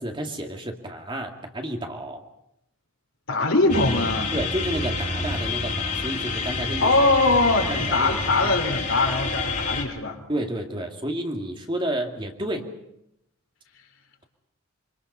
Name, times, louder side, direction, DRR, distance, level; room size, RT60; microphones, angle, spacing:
voice 1, 0.0-2.2 4.3-6.9 7.7-8.6 10.3-12.7, right 1 dB, 20° right, 3 dB, 2.3 m, -31 dB
voice 2, 3.3-4.3 6.8-10.2, left 2 dB, 65° left, 3 dB, 3.9 m, -22 dB
sound 1, 3.7-9.8, left 3 dB, 40° left, 3.7 m, -28 dB
27.0 x 25.5 x 5.6 m, 0.79 s
head